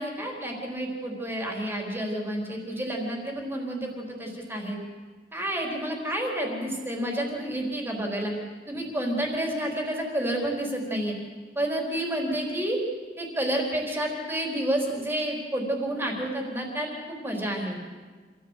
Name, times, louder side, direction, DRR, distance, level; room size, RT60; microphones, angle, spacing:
voice 1, 0.0-4.8 5.3-8.3 8.7-11.1 11.6-12.8 13.2-17.8, right 1 dB, 15° right, 0 dB, 4.3 m, -30 dB
27.0 x 16.0 x 8.3 m, 1.5 s
head